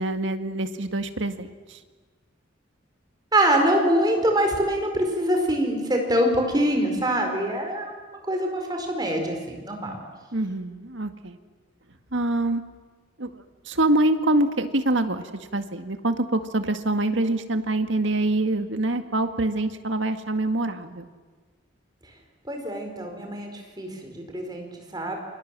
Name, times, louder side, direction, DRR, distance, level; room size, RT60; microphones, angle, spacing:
voice 1, 0.0-1.5 10.3-11.4 12.1-12.6 13.2-13.3 13.7-15.2 15.5-21.1, right 2 dB, 70° right, 8 dB, 1.9 m, -25 dB
voice 2, 3.3-9.9 22.5-25.2, right 1 dB, 20° right, 3 dB, 4.6 m, -24 dB
29.0 x 25.5 x 7.6 m, 1.4 s
head